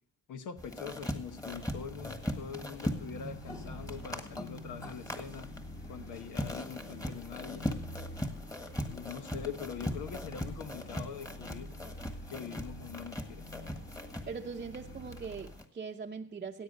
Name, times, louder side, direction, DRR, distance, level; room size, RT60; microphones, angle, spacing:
voice 1, 0.3-5.5 5.9-7.7 8.9-11.8 12.3-13.4, left 7 dB, 80° left, 8 dB, 1.1 m, -43 dB
sound 1, 0.6-15.6, equal, 10° left, 1.6 m, -40 dB
sound 2, 0.9-15.7, left 1 dB, 35° left, 1.1 m, -48 dB
voice 2, 14.3-16.6, right 5 dB, 30° right, 0 dB, 0.7 m, -41 dB
16.0 x 8.2 x 5.3 m, 0.64 s
cardioid pair, 90°, 30 cm